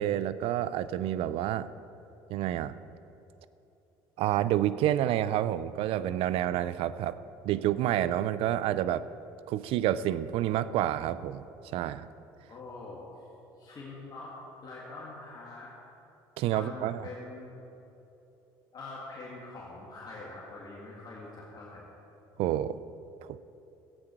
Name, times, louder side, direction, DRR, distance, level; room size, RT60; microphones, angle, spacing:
voice 1, 0.0-1.7 2.3-2.7 4.2-7.2 7.4-9.0 9.5-11.5 11.7-12.1 16.4-17.1 22.4-22.8 23.2-23.4, right 12 dB, 70° right, 16 dB, 0.4 m, -29 dB
voice 2, 12.5-13.0 13.6-14.3 14.6-15.7 16.5-17.6 18.7-21.9, left 3 dB, 40° left, -4 dB, 2.1 m, -44 dB
14.5 x 8.8 x 4.6 m, 3.0 s
supercardioid pair, 80°, 10 cm